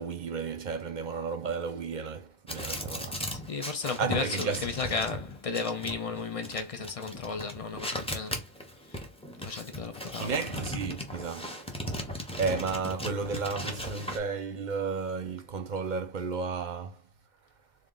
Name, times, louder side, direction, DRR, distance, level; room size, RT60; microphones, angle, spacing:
voice 1, 0.0-3.3 4.0-4.6 10.2-11.6 12.4-17.0, right 5 dB, 50° right, 0.7 m, -33 dB
sound 1, 2.5-14.2, equal, 5° left, 0.8 m, -37 dB
voice 2, 3.0-8.4 8.9-9.0 9.4-10.4, left 4 dB, 45° left, 0.5 m, -34 dB
3.6 x 2.4 x 3.8 m
omnidirectional pair, 1.1 m